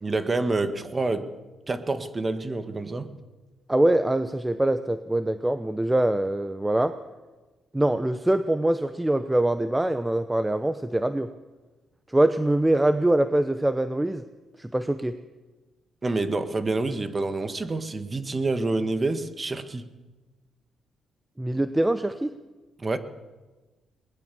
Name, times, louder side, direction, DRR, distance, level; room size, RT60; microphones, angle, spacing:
voice 1, 0.0-1.3 1.7-3.1 16.0-19.8 22.8-23.0, right 3 dB, 25° right, 10 dB, 1.7 m, -27 dB
voice 2, 3.7-7.0 7.7-11.3 12.1-14.2 14.6-15.2 21.4-22.3, right 1 dB, 10° right, 11 dB, 0.8 m, -23 dB
21.5 x 19.5 x 7.1 m, 1.2 s
cardioid pair, 90°, 0 cm